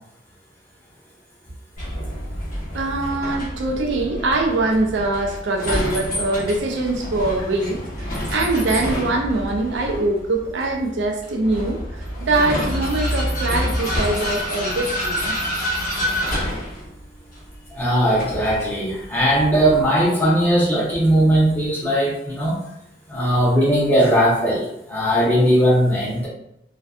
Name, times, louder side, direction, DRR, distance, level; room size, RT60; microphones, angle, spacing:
Vehicle, 1.8-19.8, equal, 50° left, 0.9 m, -28 dB
voice 1, 2.7-15.4, right 2 dB, 80° right, 2 dB, 0.4 m, -23 dB
voice 2, 17.7-22.6 23.1-26.3, equal, 10° left, -8 dB, 0.8 m, -18 dB
2.5 x 2.2 x 2.3 m, 0.81 s
head